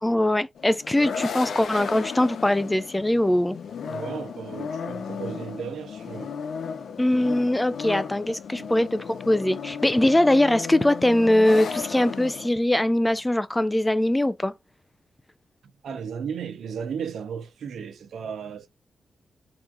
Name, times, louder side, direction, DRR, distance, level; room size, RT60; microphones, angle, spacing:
voice 1, 0.0-3.6 7.0-14.5, left 1 dB, 15° left, 0.4 m, -22 dB
sound 1, 0.6-12.5, left 6 dB, 75° left, 0.5 m, -34 dB
voice 2, 3.8-6.3 8.6-8.7 15.8-18.7, right 7 dB, 85° right, 0.7 m, -35 dB
3.5 x 3.0 x 2.4 m
cardioid pair, 70°, 0 cm